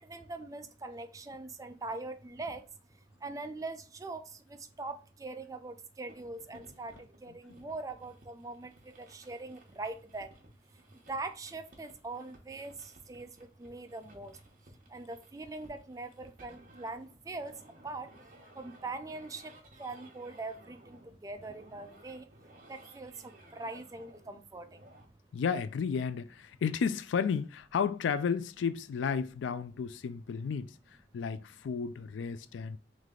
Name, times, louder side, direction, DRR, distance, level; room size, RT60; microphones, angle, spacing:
voice 1, 0.0-2.7 3.2-10.3 11.1-14.4 14.9-17.6 17.8-18.1 18.6-19.5 19.8-22.3 22.7-24.8, right 3 dB, 20° right, 0.3 m, -42 dB
sound 1, 6.1-25.0, right 1 dB, 45° right, 1.0 m, -58 dB
voice 2, 25.3-30.8 31.1-32.8, left 6 dB, 85° left, 0.3 m, -32 dB
3.3 x 3.2 x 3.7 m
head